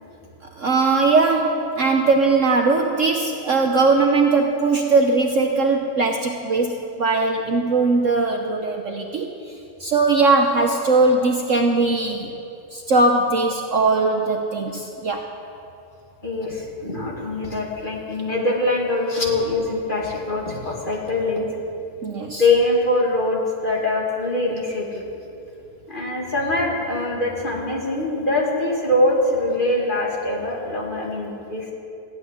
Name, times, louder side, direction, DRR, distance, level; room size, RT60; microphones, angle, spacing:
voice 1, 0.6-9.3 9.8-12.3 12.7-15.3 22.0-22.4, right 3 dB, 55° right, 3 dB, 1.1 m, -20 dB
voice 2, 16.2-21.4 22.4-25.1 25.9-31.7, left 2 dB, 30° left, -2 dB, 2.5 m, -23 dB
14.5 x 8.9 x 9.9 m, 2.7 s
omnidirectional pair, 1.9 m